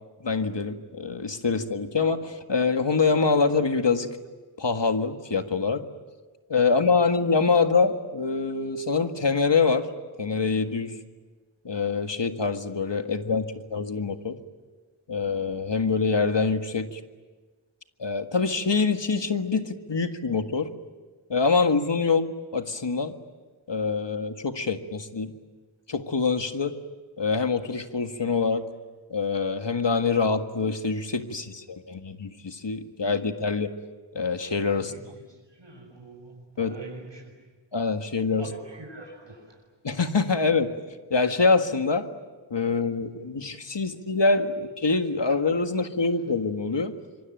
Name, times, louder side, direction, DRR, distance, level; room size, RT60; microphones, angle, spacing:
voice 1, 0.2-4.1 4.6-5.8 6.5-9.9 10.2-11.0 11.7-14.4 15.1-17.0 18.0-20.7 21.3-23.1 23.7-25.3 25.9-26.7 27.2-28.6 29.1-33.7 34.1-34.9 36.6-36.7 37.7-38.5 39.8-40.7 41.1-42.1 42.5-47.0, left 4 dB, 65° left, 7 dB, 1.8 m, -25 dB
voice 2, 34.7-37.3 38.4-39.6, right 2 dB, 70° right, 0 dB, 6.8 m, -45 dB
26.0 x 24.0 x 9.1 m, 1.4 s
wide cardioid pair, 50°, 46 cm